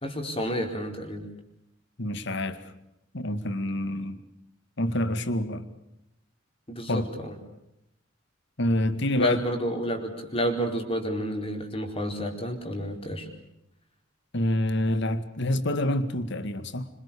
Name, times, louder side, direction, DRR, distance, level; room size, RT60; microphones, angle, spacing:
voice 1, 0.0-1.2 6.7-7.3 9.2-13.3, equal, 30° left, 4 dB, 4.4 m, -30 dB
voice 2, 2.0-2.6 3.1-4.2 4.8-5.7 6.9-7.1 8.6-9.4 14.3-16.9, left 1 dB, 60° left, 12 dB, 2.1 m, -27 dB
27.5 x 26.0 x 7.0 m, 0.83 s
head